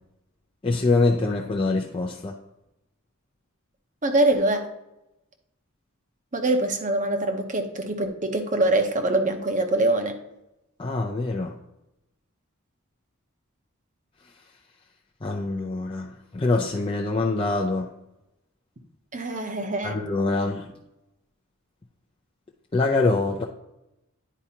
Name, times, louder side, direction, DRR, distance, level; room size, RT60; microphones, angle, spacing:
voice 1, 0.6-2.4 10.8-11.5 15.2-17.9 19.8-20.6 22.7-23.4, left 3 dB, 25° left, -1 dB, 0.5 m, -24 dB
voice 2, 4.0-4.7 6.3-10.2 19.1-20.0, right 2 dB, 40° right, 5 dB, 0.9 m, -24 dB
10.0 x 4.7 x 2.8 m, 0.92 s
head